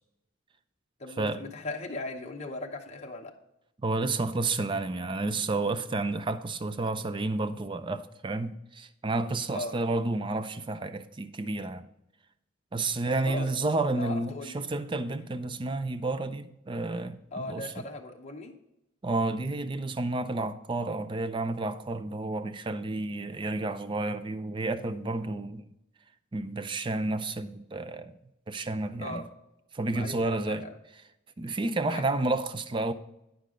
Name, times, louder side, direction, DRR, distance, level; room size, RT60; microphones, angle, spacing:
voice 1, 1.0-3.3 9.5-9.7 13.0-13.5 13.9-14.6 17.3-18.5 29.0-29.2 29.9-30.7 31.9-32.0, left 2 dB, 35° left, 0.8 m, -38 dB
voice 2, 3.8-11.9 12.7-17.7 19.0-25.6 26.3-28.1 28.5-29.2 29.7-30.6 31.4-32.9, right 2 dB, 25° right, 0.4 m, -31 dB
9.4 x 6.6 x 3.7 m
head